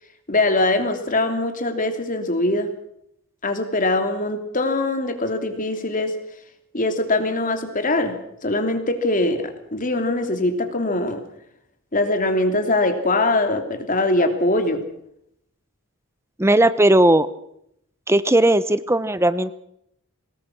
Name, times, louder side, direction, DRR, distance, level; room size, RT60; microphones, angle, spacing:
voice 1, 0.3-2.7 3.4-6.2 6.7-8.2 8.4-11.2 11.9-14.8, left 2 dB, 35° left, 7 dB, 3.0 m, -22 dB
voice 2, 16.4-17.3 18.1-19.5, right 1 dB, 10° right, 15 dB, 0.8 m, -17 dB
25.0 x 19.5 x 6.0 m, 0.75 s
head